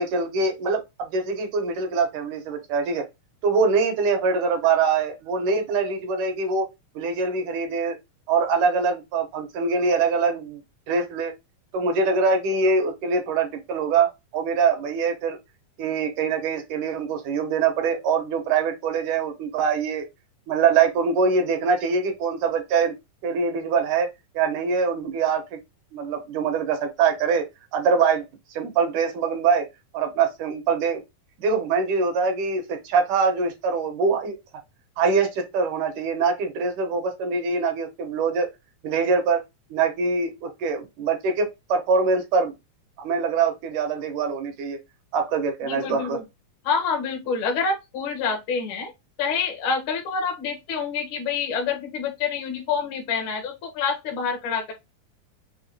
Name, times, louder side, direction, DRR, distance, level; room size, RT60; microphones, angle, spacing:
voice 1, 0.0-3.0 3.4-6.7 7.0-8.0 8.3-10.6 10.9-11.3 11.7-14.1 14.3-15.4 15.8-20.1 20.5-22.9 23.2-24.1 24.4-25.6 25.9-27.4 27.7-28.2 28.5-29.7 29.9-31.0 31.4-34.4 35.0-38.5 38.8-39.4 39.7-42.5 43.0-44.8 45.1-46.2, right 5 dB, 75° right, 2.3 m, -23 dB
voice 2, 45.7-46.2 46.6-48.9 49.2-54.7, left 5 dB, 75° left, 1.2 m, -27 dB
5.8 x 2.3 x 2.7 m
omnidirectional pair, 3.9 m